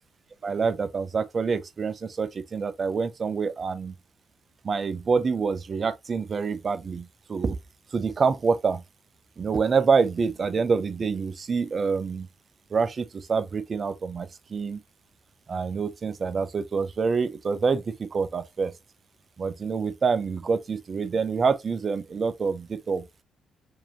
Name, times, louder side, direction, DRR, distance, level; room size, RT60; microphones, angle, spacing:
voice 1, 0.4-3.9 4.6-7.6 7.9-8.8 9.4-12.3 12.7-14.8 15.5-18.7 19.4-23.0, right 5 dB, 45° right, 0.7 m, -26 dB
4.6 x 2.9 x 2.9 m
cardioid pair, 75°, 0 cm